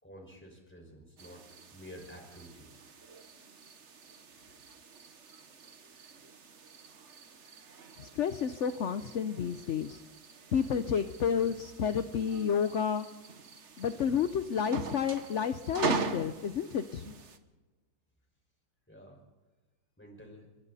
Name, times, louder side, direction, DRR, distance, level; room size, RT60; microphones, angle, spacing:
voice 1, 0.0-1.4 1.7-2.7 18.9-19.2 20.0-20.5, equal, 5° left, 2 dB, 5.3 m, -50 dB
sound 1, 1.2-17.4, right 4 dB, 40° right, 1.4 m, -42 dB
voice 2, 8.0-10.0 10.5-13.1 13.8-17.1, left 7 dB, 55° left, 10 dB, 0.8 m, -30 dB
28.5 x 23.0 x 4.2 m, 1.2 s
omnidirectional pair, 2.0 m